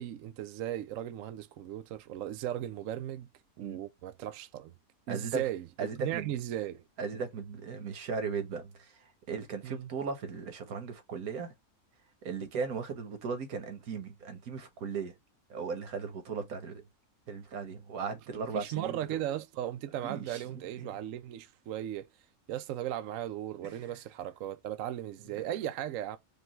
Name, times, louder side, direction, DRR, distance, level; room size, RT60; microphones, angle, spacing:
voice 1, 0.0-3.3 3.6-4.7 5.1-6.8 9.6-9.9 18.3-22.1 22.5-26.2, right 12 dB, 70° right, 0.9 m, -37 dB
voice 2, 5.1-5.4 5.8-6.3 7.0-11.5 12.2-15.1 15.5-16.8 17.3-19.0 20.0-21.0 23.6-23.9 25.4-25.5, right 5 dB, 85° right, 1.7 m, -37 dB
5.2 x 2.3 x 3.0 m
omnidirectional pair, 1.5 m